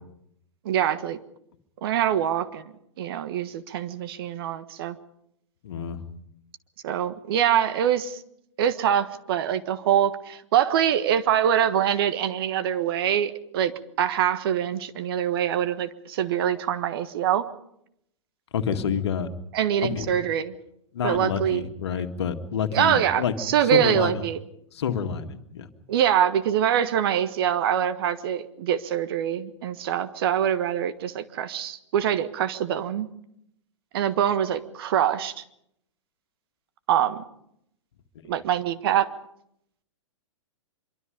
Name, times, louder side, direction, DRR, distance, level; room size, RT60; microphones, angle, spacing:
voice 1, 0.6-1.2 1.8-5.0 6.8-8.2 8.6-13.7 14.0-17.5 19.5-20.5 21.0-21.6 22.7-24.4 25.9-33.1 33.9-35.3 36.9-37.2 38.3-39.1, right 10 dB, 50° right, 11 dB, 1.5 m, -24 dB
voice 2, 5.6-6.0 18.5-19.3 19.8-20.1 20.9-23.3 23.6-24.2 24.7-25.7, left 7 dB, 60° left, 7 dB, 2.0 m, -28 dB
25.0 x 23.5 x 5.2 m, 0.76 s
figure-of-eight pair, 105°, 16 cm